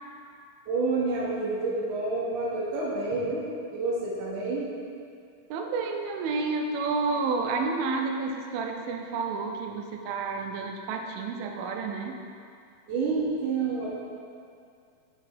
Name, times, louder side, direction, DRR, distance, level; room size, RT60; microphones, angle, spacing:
voice 1, 0.7-4.7 12.9-13.9, right 3 dB, 65° right, -7 dB, 2.4 m, -29 dB
voice 2, 5.5-12.2, right 4 dB, 85° right, 3 dB, 2.5 m, -30 dB
7.4 x 5.9 x 4.5 m, 2.4 s
omnidirectional pair, 4.2 m